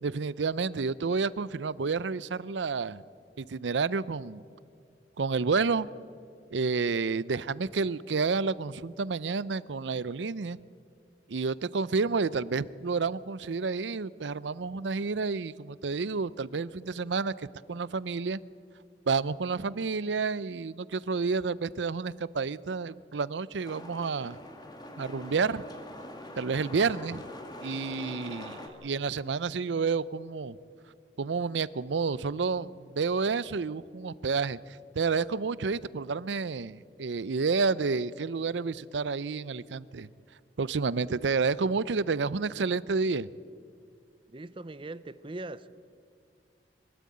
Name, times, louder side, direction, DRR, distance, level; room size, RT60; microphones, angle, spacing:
voice 1, 0.0-3.0 3.4-4.4 5.2-5.9 6.5-10.6 11.3-18.4 19.1-24.4 25.0-25.6 26.4-27.2 27.6-30.6 31.2-34.6 35.0-40.1 40.6-43.3, right 4 dB, 90° right, 0.6 m, -30 dB
sound 1, 23.6-28.7, left 1 dB, 25° left, 1.9 m, -44 dB
voice 2, 44.3-45.7, right 2 dB, 30° right, 0.6 m, -40 dB
23.5 x 13.0 x 8.7 m
head